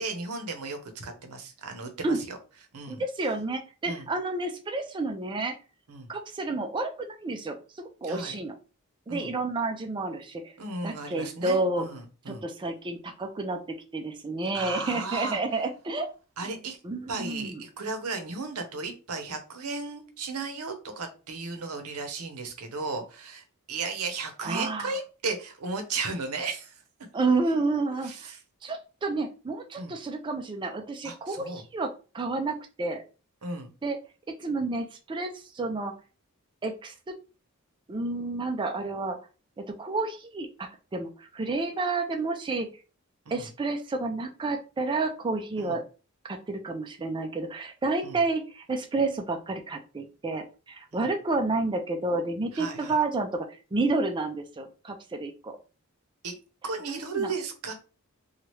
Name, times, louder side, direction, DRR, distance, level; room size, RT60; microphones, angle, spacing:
voice 1, 0.0-2.4 2.7-3.0 3.8-4.1 5.9-6.1 8.0-8.4 9.1-9.3 10.6-12.4 14.5-15.4 16.4-16.8 17.1-26.8 28.0-28.4 29.8-30.0 31.0-31.6 33.4-33.7 43.3-43.5 45.6-45.8 48.0-48.2 50.9-51.1 52.5-53.0 56.2-56.4 56.6-57.7, right 3 dB, 75° right, 6 dB, 0.8 m, -35 dB
voice 2, 2.9-5.5 6.1-8.5 9.1-10.5 10.8-11.9 12.3-16.1 16.8-17.6 24.4-24.9 27.1-28.3 28.6-33.0 33.8-34.0 34.4-35.9 36.6-37.1 37.9-39.2 39.6-42.7 43.3-45.8 46.3-55.5 56.9-57.3, right 3 dB, 20° right, 4 dB, 0.4 m, -30 dB
3.0 x 2.3 x 3.1 m, 0.33 s
head